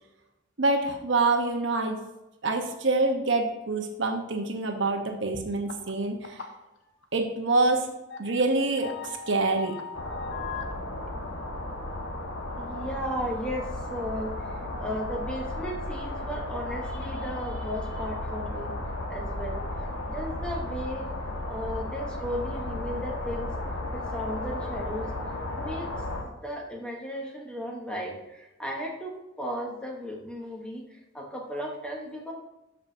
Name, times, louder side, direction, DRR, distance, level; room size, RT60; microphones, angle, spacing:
voice 1, 0.6-2.0 2.4-6.4 7.1-7.9 8.2-9.7, right 3 dB, 65° right, 3 dB, 1.1 m, -26 dB
sound 1, 5.7-5.9 6.2-6.6 7.0-7.1 7.8-7.9 8.1-10.8, left 6 dB, 70° left, 0.9 m, -39 dB
voice 2, 8.7-9.1 12.5-18.7 19.1-19.6 20.1-21.1 21.5-23.5 23.9-25.1 25.6-32.3, equal, 5° left, -1 dB, 1.1 m, -35 dB
sound 2, 9.9-26.2, left 1 dB, 85° left, 1.5 m, -34 dB
13.0 x 5.6 x 2.7 m, 0.97 s
head